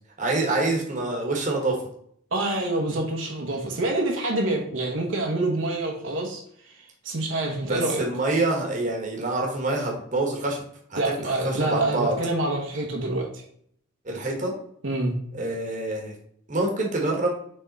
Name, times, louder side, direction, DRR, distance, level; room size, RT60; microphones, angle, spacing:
voice 1, 0.2-1.8 7.6-10.6 10.9-12.2 14.0-14.5 15.3-16.1 16.5-17.3, right 2 dB, 40° right, 1 dB, 1.3 m, -26 dB
voice 2, 2.3-8.0 11.0-13.4 14.8-15.2, right 2 dB, 70° right, 0 dB, 1.1 m, -27 dB
6.6 x 3.6 x 4.0 m, 0.65 s
head